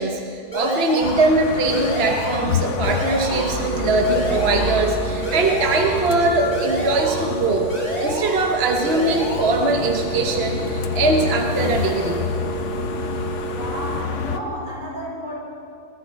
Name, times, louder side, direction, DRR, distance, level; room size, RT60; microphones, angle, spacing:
voice 1, 0.0-7.7 8.0-12.2, right 2 dB, 45° right, 2 dB, 1.2 m, -21 dB
sound 1, 0.5-1.4 1.7-2.5 2.8-3.7 4.0-4.9 5.2-6.1 6.5-7.4 7.7-8.6 8.8-9.7, left 1 dB, 25° left, 3.0 m, -29 dB
sound 2, 1.0-14.4, left 7 dB, 60° left, 1.0 m, -29 dB
sound 3, 3.3-14.0, right 6 dB, 90° right, 1.8 m, -32 dB
voice 2, 13.5-15.3, equal, 70° right, -5 dB, 5.4 m, -31 dB
21.5 x 14.5 x 4.5 m, 2.5 s
omnidirectional pair, 1.6 m